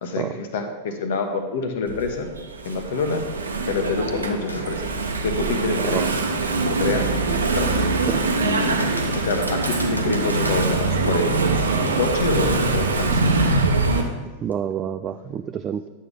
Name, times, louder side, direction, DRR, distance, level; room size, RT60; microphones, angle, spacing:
voice 1, 0.0-2.3 2.6-3.3 3.7-4.9 5.2-6.1 6.7-8.0 8.4-8.8 9.1-11.4 11.8-13.2, left 4 dB, 55° left, 6 dB, 1.1 m, -27 dB
Engine / Mechanisms, 1.9-14.0, right 3 dB, 75° right, 0.9 m, -23 dB
sound 1, 4.5-4.8 5.3-5.4 8.6-10.8 14.5-14.6, right 2 dB, 90° left, 0.9 m, -33 dB
voice 2, 14.4-15.8, right 9 dB, 30° right, 9 dB, 0.3 m, -28 dB
11.0 x 6.5 x 3.8 m, 1.2 s
figure-of-eight pair, 90°, 0 cm